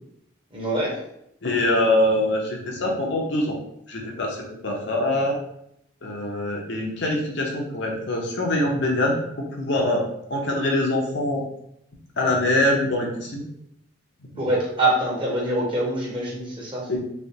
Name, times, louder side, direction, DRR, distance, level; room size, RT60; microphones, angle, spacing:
voice 1, 0.5-1.0 14.4-16.9, right 1 dB, 25° right, -4 dB, 0.9 m, -24 dB
voice 2, 1.4-3.6 3.9-5.3 6.0-9.2 9.6-10.0 10.3-11.4 12.2-13.4 14.3-14.4 16.9-17.0, left 1 dB, 60° left, -1 dB, 0.7 m, -23 dB
3.3 x 2.9 x 2.8 m, 0.76 s
head